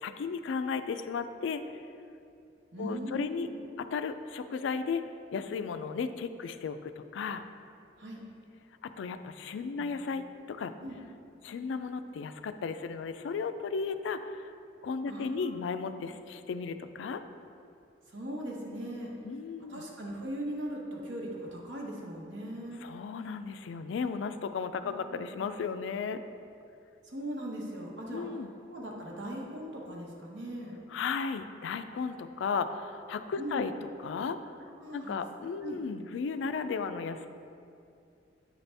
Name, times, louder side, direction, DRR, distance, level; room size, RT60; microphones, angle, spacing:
voice 1, 0.0-1.6 2.8-3.5 3.8-5.0 5.3-7.4 8.8-10.7 11.4-14.5 14.8-17.2 19.2-19.8 22.8-26.2 28.1-28.5 30.9-33.7 34.0-34.6 34.9-37.3, left 5 dB, 90° left, 10 dB, 0.3 m, -35 dB
voice 2, 2.7-3.5 8.0-8.2 9.8-10.0 10.8-11.0 15.1-15.6 18.1-19.1 19.7-22.9 24.8-25.4 27.0-28.3 28.7-30.8 33.4-33.7 34.8-35.1 35.6-35.8, right 1 dB, 85° right, -2 dB, 1.2 m, -39 dB
8.6 x 4.1 x 3.4 m, 2.5 s
head